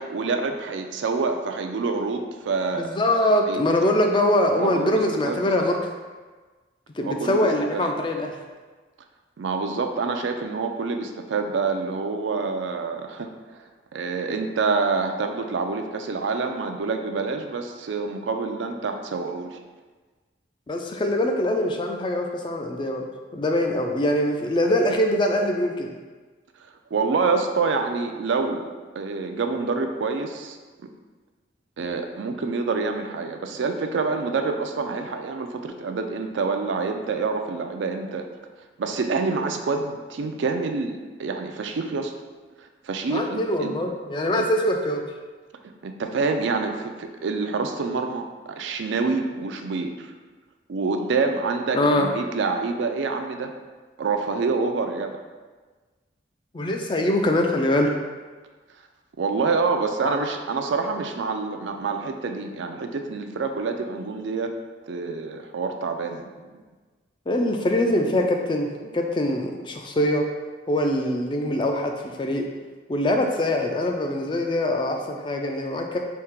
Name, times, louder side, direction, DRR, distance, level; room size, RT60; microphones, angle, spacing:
voice 1, 0.0-2.9 3.5-3.6 4.6-5.5 7.0-7.9 9.4-13.6 13.9-19.6 26.9-28.7 28.9-30.6 31.8-38.3 38.8-42.1 42.6-43.7 44.3-44.5 45.6-50.1 50.7-53.5 54.0-55.1 59.2-64.5 64.9-66.5, right 4 dB, 75° right, 5 dB, 0.4 m, -27 dB
voice 2, 2.8-5.8 7.0-8.3 20.7-23.1 23.3-25.9 43.1-45.0 51.7-52.1 56.5-57.9 60.0-60.1 67.3-70.2 70.7-72.4 72.9-76.0, left 1 dB, 25° left, 2 dB, 0.3 m, -23 dB
3.6 x 2.8 x 4.5 m, 1.4 s
head